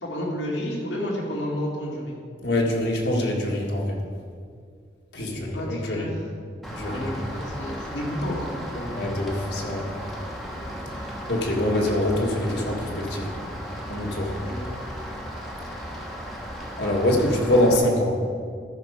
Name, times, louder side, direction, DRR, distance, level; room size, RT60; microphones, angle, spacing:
voice 1, 0.0-2.2 5.1-6.2 6.8-9.0 14.4-14.7, equal, 85° left, -3 dB, 2.3 m, -31 dB
voice 2, 2.4-4.0 5.1-6.1 6.7-7.2 8.9-9.8 11.3-13.3 13.9-14.3 16.8-18.1, left 1 dB, 65° left, -2 dB, 1.7 m, -24 dB
Rain, 6.6-17.8, equal, ahead, 1.2 m, -35 dB
13.0 x 6.0 x 5.1 m, 2.1 s
head